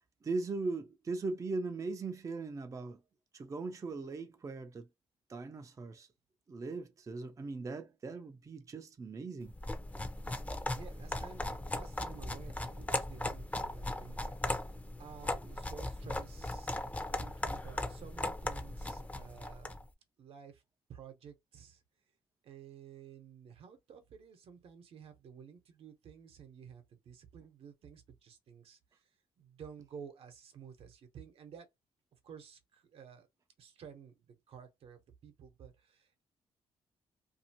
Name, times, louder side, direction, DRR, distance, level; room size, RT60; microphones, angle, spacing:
voice 1, 0.2-3.0 3.3-4.9 5.3-6.1 6.5-9.5, right 3 dB, 30° right, 0.5 m, -39 dB
sound 1, 9.5-19.8, left 1 dB, 15° left, 0.6 m, -38 dB
voice 2, 10.7-14.4 15.0-19.8 20.2-20.6 20.9-21.8 22.4-29.1 29.4-31.7 32.1-33.3 33.6-36.2, right 7 dB, 70° right, 0.9 m, -53 dB
2.6 x 2.5 x 2.8 m
cardioid pair, 80°, 10 cm